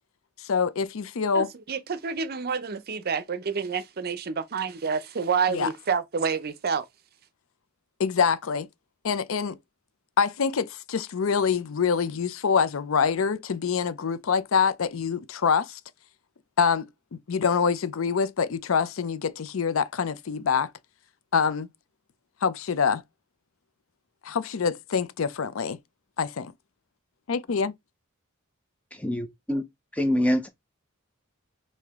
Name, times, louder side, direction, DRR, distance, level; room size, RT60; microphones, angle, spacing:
voice 1, 0.4-1.5 5.5-5.7 8.0-8.7 9.0-9.6 10.2-15.8 16.6-16.8 17.3-20.7 21.3-21.7 22.4-23.0 24.2-25.8 26.2-26.5 27.3-27.7, left 6 dB, 70° left, 0.5 m, -25 dB
voice 2, 1.3-6.9, right 6 dB, 50° right, 0.6 m, -28 dB
voice 3, 29.0-29.6 29.9-30.5, equal, 5° left, 0.5 m, -25 dB
4.8 x 2.7 x 3.5 m
head